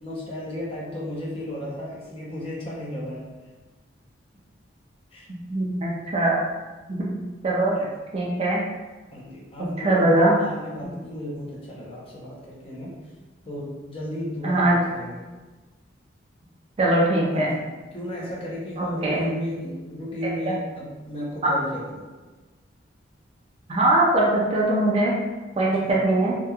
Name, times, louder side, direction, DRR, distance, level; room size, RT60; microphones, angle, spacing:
voice 1, 0.0-3.3 5.1-5.3 7.7-7.9 9.1-10.1 10.4-12.9 13.4-15.3 17.3-17.5 17.9-22.1 25.8-25.9, left 1 dB, 30° left, -6 dB, 0.6 m, -34 dB
voice 2, 5.5-6.4 6.9-7.7 8.1-8.6 9.8-10.4 14.4-14.8 16.8-17.5 18.8-19.3 20.2-20.5 21.4-21.5 23.7-25.1 25.6-26.3, right 1 dB, 30° right, -3 dB, 0.4 m, -21 dB
2.8 x 2.3 x 2.3 m, 1.2 s
head